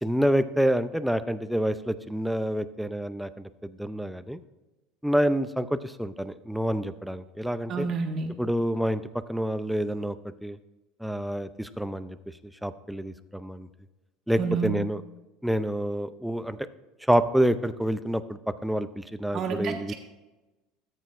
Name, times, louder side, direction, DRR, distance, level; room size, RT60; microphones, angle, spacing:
voice 1, 0.0-4.4 5.0-7.9 8.4-9.0 9.3-10.2 10.4-10.6 11.0-12.2 12.6-13.7 14.3-15.0 15.4-16.6 17.1-19.9, equal, ahead, 12 dB, 0.5 m, -27 dB
voice 2, 7.7-8.3 14.4-14.8 19.3-19.9, right 5 dB, 45° right, 4 dB, 1.6 m, -29 dB
14.0 x 8.1 x 2.6 m, 1.1 s
hypercardioid pair, 90°, 0 cm